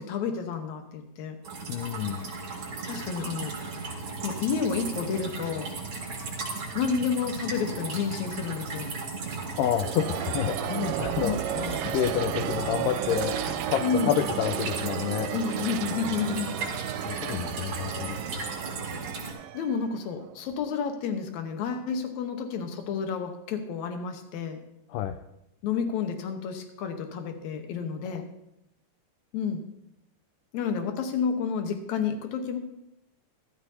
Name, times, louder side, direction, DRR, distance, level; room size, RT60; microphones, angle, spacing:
voice 1, 0.0-1.4 2.9-3.5 4.2-5.7 6.7-8.9 11.2-11.4 13.8-14.1 15.3-16.6 19.5-24.6 25.6-28.2 29.3-29.6 30.5-32.6, left 6 dB, 65° left, 5 dB, 2.3 m, -30 dB
sound 1, 1.4-19.3, right 3 dB, 45° right, 2.8 m, -36 dB
voice 2, 1.7-2.3 9.6-15.3 16.6-18.2 24.9-25.2, left 10 dB, 80° left, 8 dB, 2.1 m, -29 dB
sound 2, 9.2-20.7, right 11 dB, 90° right, 2.2 m, -34 dB
14.0 x 13.0 x 2.8 m, 0.85 s
omnidirectional pair, 3.8 m